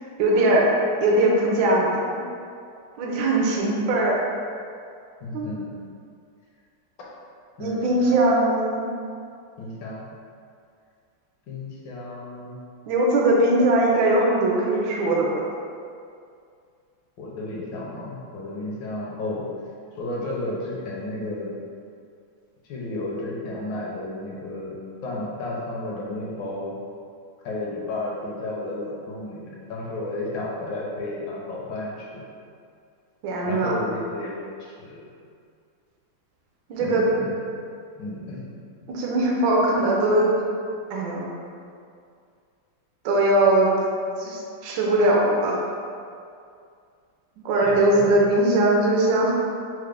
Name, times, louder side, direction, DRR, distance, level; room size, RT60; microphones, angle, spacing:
voice 1, 0.2-0.7 1.0-2.2 3.0-4.1 5.3-5.6 7.6-8.8 12.9-15.4 33.2-33.8 36.7-37.1 38.9-40.3 40.9-41.3 43.0-43.7 44.2-45.6 47.4-49.3, right 1 dB, 75° right, -3 dB, 1.3 m, -20 dB
voice 2, 5.2-5.6 7.6-8.2 9.6-10.1 11.5-12.5 17.2-19.4 19.9-21.5 22.6-24.7 25.0-26.8 27.4-32.2 33.5-35.0 36.8-37.4 38.0-38.4 47.6-48.3, left 2 dB, 75° left, -4 dB, 1.3 m, -32 dB
4.7 x 2.0 x 3.2 m, 2.3 s
omnidirectional pair, 2.2 m